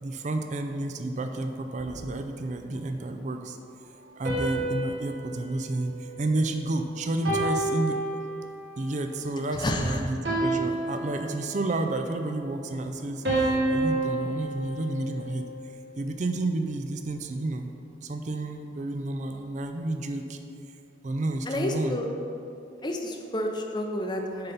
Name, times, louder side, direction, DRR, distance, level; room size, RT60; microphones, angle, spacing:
voice 1, 0.0-3.6 4.2-8.0 8.8-15.5 16.0-17.7 18.0-20.4 21.0-22.0, right 2 dB, 40° right, 6 dB, 0.4 m, -31 dB
sound 1, 4.2-6.7 7.2-8.7 10.2-11.7 13.2-15.6, right 2 dB, 65° right, 1.8 m, -30 dB
voice 2, 9.5-10.0 21.5-22.1 22.8-24.5, left 1 dB, 25° left, 2 dB, 0.6 m, -30 dB
7.7 x 4.0 x 5.6 m, 2.6 s
head